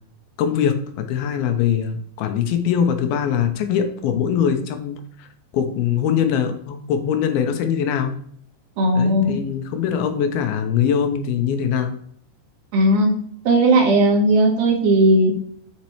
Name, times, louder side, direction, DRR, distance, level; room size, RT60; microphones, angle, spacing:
voice 1, 0.4-5.3 5.5-8.2 8.9-12.0, left 8 dB, 80° left, 7 dB, 2.6 m, -22 dB
voice 2, 8.8-9.4 12.7-13.1 13.5-15.3, right 1 dB, 70° right, 0 dB, 3.5 m, -16 dB
7.3 x 7.3 x 3.1 m, 0.62 s
omnidirectional pair, 4.4 m